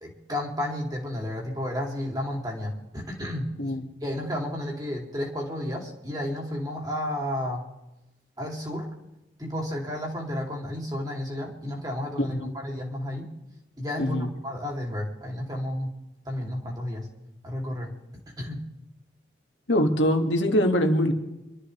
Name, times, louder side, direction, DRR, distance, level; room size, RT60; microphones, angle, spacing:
voice 1, 0.0-3.5 4.0-7.6 8.4-8.9 9.4-13.3 13.8-15.9 16.2-17.1 17.4-17.9 18.4-18.6, left 1 dB, 20° right, 0 dB, 2.8 m, -32 dB
voice 2, 14.0-14.3 19.7-21.1, equal, 90° left, 4 dB, 1.9 m, -23 dB
26.0 x 13.0 x 3.3 m, 0.97 s
head